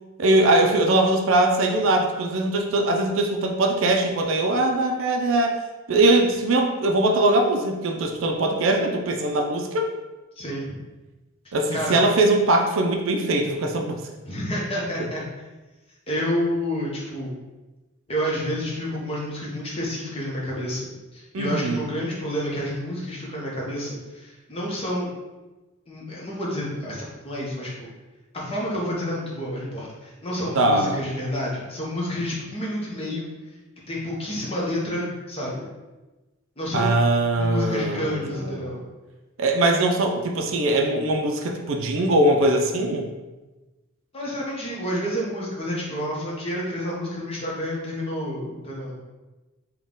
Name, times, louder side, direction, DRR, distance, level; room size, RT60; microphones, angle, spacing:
voice 1, 0.2-5.6 5.9-9.9 11.5-14.0 21.3-21.8 30.5-31.0 36.7-38.7 39.4-43.1, right 2 dB, 65° right, 3 dB, 0.4 m, -21 dB
voice 2, 10.4-10.8 11.7-12.0 14.2-15.2 16.1-17.4 18.1-25.1 25.9-27.9 28.3-33.3 33.9-35.7 36.6-36.9 37.3-38.9 44.1-49.0, equal, 25° left, -4 dB, 0.9 m, -29 dB
4.1 x 2.3 x 3.7 m, 1.1 s
head